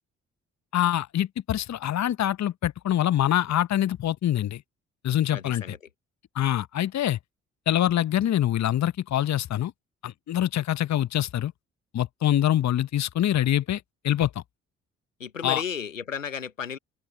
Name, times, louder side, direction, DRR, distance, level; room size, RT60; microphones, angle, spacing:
voice 1, 0.7-4.6 5.0-5.6 6.3-7.2 7.7-9.7 10.0-11.5 11.9-14.4 15.4-15.6, left 12 dB, 45° left, 1.2 m, -25 dB
voice 2, 5.3-5.8 15.2-16.8, left 7 dB, 90° left, 1.3 m, -33 dB
figure-of-eight pair, 40°, 38 cm